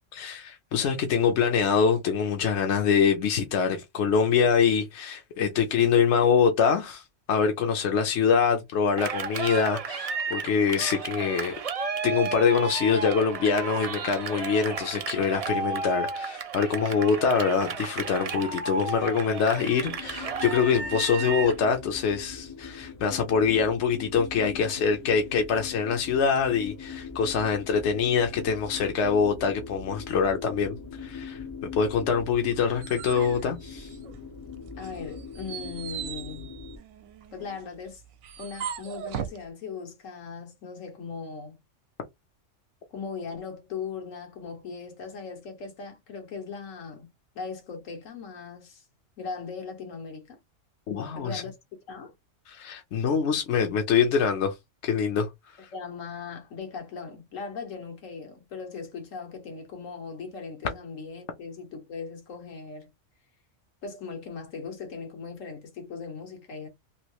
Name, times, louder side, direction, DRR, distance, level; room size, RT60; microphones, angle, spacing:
voice 1, 0.1-11.5 12.0-31.4 31.8-33.9 50.9-51.4 52.5-54.5 54.8-55.3 55.6-55.7, left 6 dB, 65° left, 0.9 m, -24 dB
Cheering, 9.0-21.6, right 5 dB, 50° right, 0.4 m, -33 dB
sound 1, 19.8-36.8, left 5 dB, 25° left, 0.5 m, -41 dB
sound 2, 32.4-34.4 34.8-39.4, right 9 dB, 75° right, 0.9 m, -39 dB
voice 2, 34.8-36.5 37.3-38.0 38.4-41.6 42.9-48.8 49.2-50.4 51.1-51.5 51.9-52.1 55.7-62.9 63.8-66.7, left 5 dB, 85° left, 1.4 m, -39 dB
3.1 x 2.7 x 2.9 m
omnidirectional pair, 1.3 m